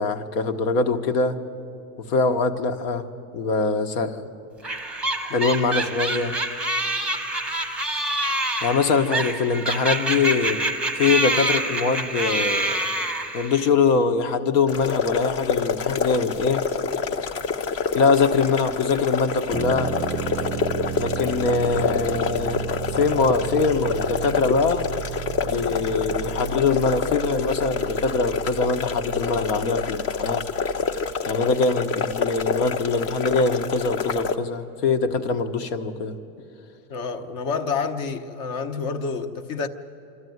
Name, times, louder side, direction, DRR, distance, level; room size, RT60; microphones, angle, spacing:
voice 1, 0.0-1.4 2.1-3.0 3.3-4.2 5.2-6.3 8.6-10.6 10.9-12.9 13.3-16.6 17.9-19.9 21.0-22.6 22.9-24.9 25.4-30.4 31.3-36.2, left 4 dB, 75° left, 1.5 m, -23 dB
sound 1, 4.6-13.7, right 1 dB, 5° right, 0.9 m, -26 dB
sound 2, 14.7-34.3, left 5 dB, 30° left, 0.7 m, -27 dB
sound 3, 19.5-31.1, right 9 dB, 30° right, 0.5 m, -34 dB
voice 2, 36.9-39.7, left 5 dB, 45° left, 1.1 m, -28 dB
26.0 x 13.0 x 9.5 m
supercardioid pair, 140°, 46 cm